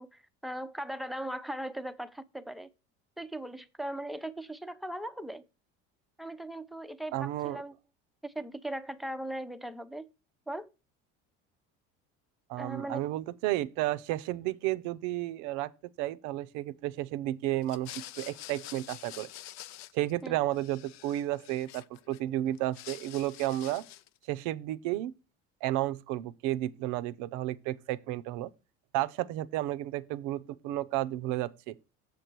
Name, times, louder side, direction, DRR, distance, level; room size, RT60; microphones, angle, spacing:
voice 1, 0.0-2.7 3.2-5.4 6.2-7.7 8.2-10.1 10.5-10.7 12.6-13.0 20.2-20.4, right 1 dB, ahead, 0.5 m, -39 dB
voice 2, 7.1-7.6 12.5-15.7 16.0-19.3 19.9-23.8 24.3-25.1 25.6-28.5 28.9-31.8, right 15 dB, 75° right, 0.6 m, -32 dB
sound 1, 17.6-20.3 20.5-22.2 22.5-24.2, left 14 dB, 65° left, 0.6 m, -47 dB
7.0 x 6.8 x 4.4 m
supercardioid pair, 95°, 30 cm